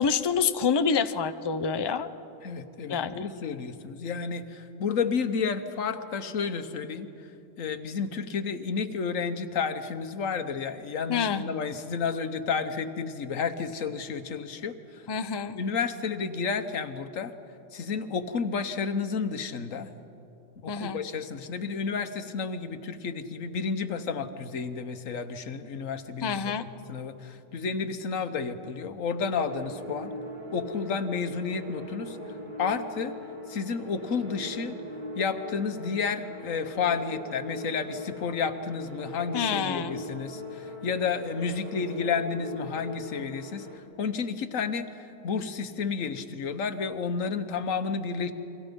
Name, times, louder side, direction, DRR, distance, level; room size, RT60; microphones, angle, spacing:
voice 1, 0.0-2.1 2.9-3.3 11.1-11.4 15.1-15.6 20.7-21.0 26.2-26.7 39.3-40.0, left 6 dB, 25° left, 11 dB, 0.6 m, -27 dB
voice 2, 2.4-7.1 7.6-15.1 15.5-17.3 17.7-19.9 20.6-26.5 26.9-30.1 30.5-32.2 32.6-33.2 33.5-34.8 35.2-48.3, left 5 dB, 90° left, 10 dB, 1.5 m, -31 dB
sound 1, 29.3-43.8, equal, 40° right, 2.5 m, -40 dB
29.5 x 24.0 x 5.3 m, 2.8 s
omnidirectional pair, 1.3 m